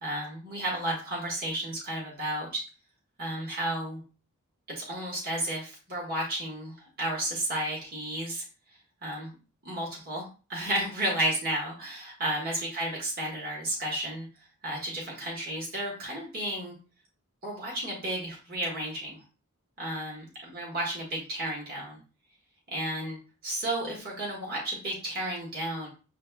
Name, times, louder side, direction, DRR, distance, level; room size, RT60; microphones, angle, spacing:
voice 1, 0.0-2.6 3.2-4.0 4.8-8.4 9.0-9.3 9.6-14.2 14.6-16.7 17.4-19.2 19.8-20.2 20.5-22.0 22.7-25.9, right 1 dB, 45° right, -3 dB, 1.4 m, -32 dB
7.2 x 2.4 x 2.3 m, 0.33 s
head